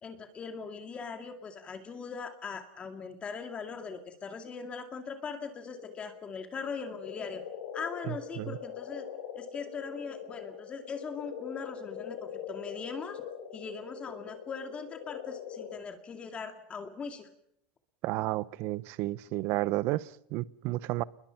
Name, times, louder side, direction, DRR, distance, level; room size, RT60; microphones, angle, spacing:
voice 1, 0.0-7.4 7.7-9.1 9.3-13.2 13.5-17.3, left 5 dB, 20° left, 2.3 m, -40 dB
sound 1, 5.6-15.8, left 8 dB, 85° left, 5.5 m, -43 dB
voice 2, 8.1-8.6 18.0-21.0, right 18 dB, 50° right, 0.8 m, -32 dB
28.5 x 21.5 x 5.9 m
supercardioid pair, 145°, 5 cm